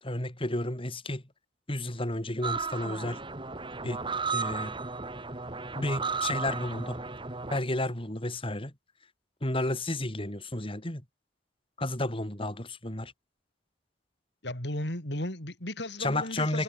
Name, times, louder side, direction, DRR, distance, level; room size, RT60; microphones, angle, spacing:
voice 1, 0.0-1.2 1.7-3.2 3.8-4.8 5.7-7.0 7.5-8.7 9.4-11.0 11.8-13.1 16.0-16.6, left 1 dB, 30° left, 3.9 m, -32 dB
sound 1, 2.4-7.6, right 4 dB, 25° right, 2.7 m, -34 dB
voice 2, 14.4-16.6, left 1 dB, 65° left, 5.5 m, -35 dB
head